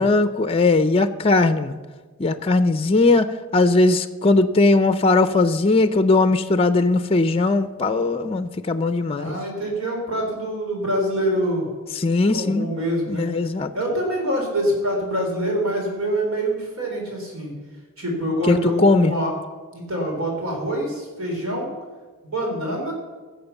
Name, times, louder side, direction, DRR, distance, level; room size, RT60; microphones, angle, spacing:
voice 1, 0.0-1.8 2.2-9.4 12.0-12.7 13.1-13.7 18.5-19.1, left 2 dB, 25° left, 11 dB, 0.5 m, -19 dB
voice 2, 9.1-11.7 12.3-13.3 13.7-17.6 18.0-19.3 19.7-21.7 22.2-22.9, equal, 80° right, 0 dB, 3.8 m, -25 dB
16.0 x 7.4 x 7.0 m, 1.4 s
head